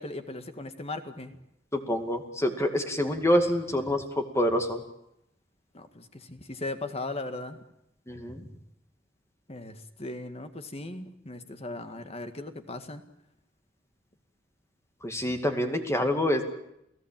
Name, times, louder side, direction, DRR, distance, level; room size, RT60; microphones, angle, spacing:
voice 1, 0.0-1.4 5.7-7.6 9.5-13.0, left 2 dB, 35° left, 8 dB, 1.9 m, -38 dB
voice 2, 1.7-4.8 8.1-8.4 15.0-16.4, left 1 dB, 15° left, 6 dB, 2.3 m, -26 dB
29.5 x 16.5 x 9.0 m, 0.80 s
head